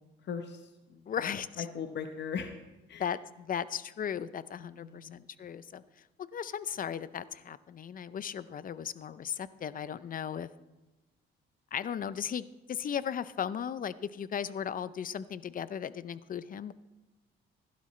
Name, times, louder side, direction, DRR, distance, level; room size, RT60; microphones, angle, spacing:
voice 1, 0.2-2.5 2.9-3.1 4.6-5.2, left 6 dB, 60° left, 6 dB, 0.9 m, -40 dB
voice 2, 1.1-1.7 3.0-5.8 6.3-10.5 11.7-16.7, left 8 dB, 45° left, 16 dB, 0.5 m, -36 dB
16.0 x 11.5 x 3.2 m, 1.1 s
cardioid pair, 90°, 20 cm